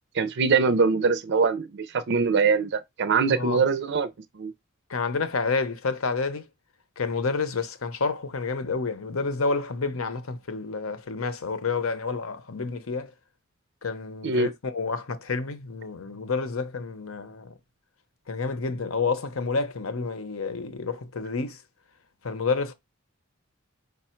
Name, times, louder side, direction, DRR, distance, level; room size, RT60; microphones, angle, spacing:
voice 1, 0.1-4.1 4.4-4.5 14.2-14.5, right 5 dB, 55° right, 0.5 m, -23 dB
voice 2, 4.9-6.4 7.0-13.1 13.8-17.5 18.3-21.6 22.2-22.7, left 4 dB, 70° left, 0.8 m, -29 dB
5.4 x 2.1 x 4.3 m
head